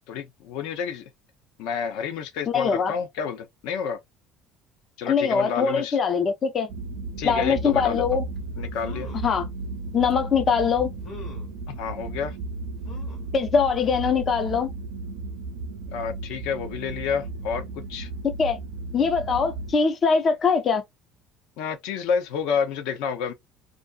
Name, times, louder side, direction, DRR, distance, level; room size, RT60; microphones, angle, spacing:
voice 1, 0.1-1.1 1.6-4.0 5.0-6.0 7.2-8.1 8.6-9.1 11.7-12.4 15.9-18.1 21.6-23.3, left 6 dB, 75° left, 0.6 m, -29 dB
voice 2, 2.5-2.9 5.1-6.7 7.2-8.2 9.2-9.4 9.9-10.9 13.3-14.7 18.4-18.6 18.9-20.8, left 5 dB, 30° left, 0.3 m, -22 dB
sound 1, 6.7-19.7, right 3 dB, 70° right, 0.5 m, -34 dB
sound 2, 8.4-8.5 8.8-9.4 10.1-10.2 11.0-11.6 12.8-13.3 13.8-13.9 14.2-14.3, left 5 dB, 45° left, 1.0 m, -43 dB
2.5 x 2.3 x 2.4 m
cardioid pair, 165°, 0 cm